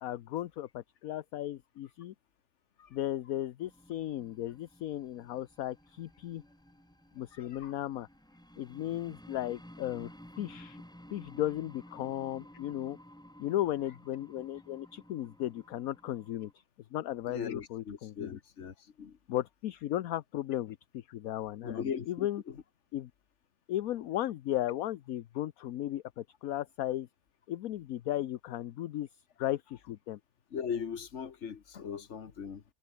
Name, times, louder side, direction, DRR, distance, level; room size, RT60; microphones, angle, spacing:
voice 1, 0.0-2.1 2.9-6.4 7.1-8.1 8.6-10.1 10.4-10.8 11.1-13.0 13.4-16.5 16.9-18.4 19.3-22.4 22.9-23.1 23.7-27.1 27.5-29.1 29.4-30.2, left 13 dB, 70° left, 1.1 m, -35 dB
sound 1, 3.6-16.5, equal, 5° left, 1.3 m, -54 dB
voice 2, 7.3-7.7 17.3-19.2 21.6-22.6 30.5-32.6, left 7 dB, 50° left, 1.6 m, -39 dB
omnidirectional pair, 1.6 m